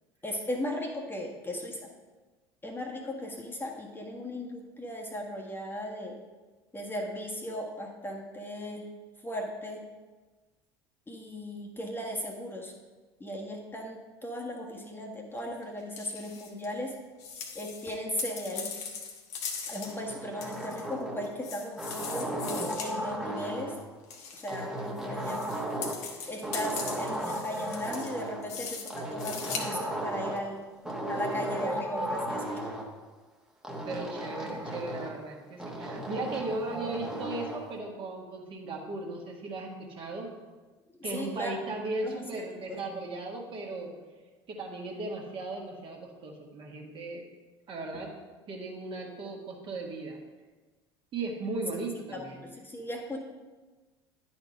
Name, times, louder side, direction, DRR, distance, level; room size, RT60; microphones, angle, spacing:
voice 1, 0.2-1.9 2.6-6.1 6.7-8.9 9.2-9.8 11.1-12.7 13.2-16.9 17.5-18.7 19.7-22.3 22.8-23.7 24.3-25.7 26.3-30.6 31.1-32.6 41.0-41.6 42.0-42.8 52.1-53.2, left 1 dB, 15° left, 0 dB, 1.5 m, -37 dB
sound 1, 15.6-15.7 16.0-16.7 17.2-20.0 20.4-20.9 21.2-22.9 24.1-24.6 25.0-29.7 30.4-30.5 30.9-31.0, left 6 dB, 55° left, 1.3 m, -40 dB
sound 2, 19.8-21.4 21.8-23.8 24.5-26.1 26.4-28.4 28.9-30.5 30.8-32.9 33.6-35.2 35.6-37.6, right 1 dB, 5° right, 1.3 m, -35 dB
voice 2, 33.8-40.3 41.0-43.9 44.5-47.2 47.7-48.1 48.5-50.2 51.1-52.4, right 2 dB, 40° right, 0 dB, 1.6 m, -37 dB
10.5 x 4.4 x 5.3 m, 1.3 s
figure-of-eight pair, 65°, 13 cm